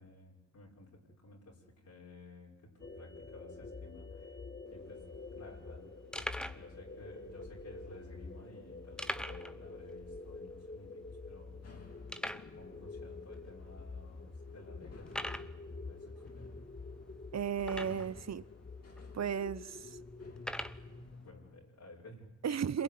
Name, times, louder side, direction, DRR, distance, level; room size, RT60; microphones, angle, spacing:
voice 1, 0.0-4.4 4.7-5.0 5.3-11.6 12.0-12.3 12.6-16.5 21.1-22.3 22.7-22.8, left 2 dB, 70° left, 6.1 m, -55 dB
sound 1, 2.8-21.0, left 3 dB, 35° left, 1.9 m, -48 dB
sound 2, 4.7-4.8 4.9-5.1 5.6-5.7 6.1-6.7 7.4-7.5 9.0-9.6 9.9-10.0 10.4-10.5 11.1-11.2 12.1-12.5 13.3-13.4 14.0-14.1 15.1-15.5 17.6-18.2 19.0-19.1 20.4-20.8, equal, 5° left, 1.1 m, -40 dB
sound 3, 11.6-21.6, left 3 dB, 55° left, 3.3 m, -55 dB
voice 2, 17.3-18.4 19.1-20.0 22.4-22.8, right 8 dB, 65° right, 0.9 m, -35 dB
27.5 x 22.5 x 9.6 m
cardioid pair, 55°, 29 cm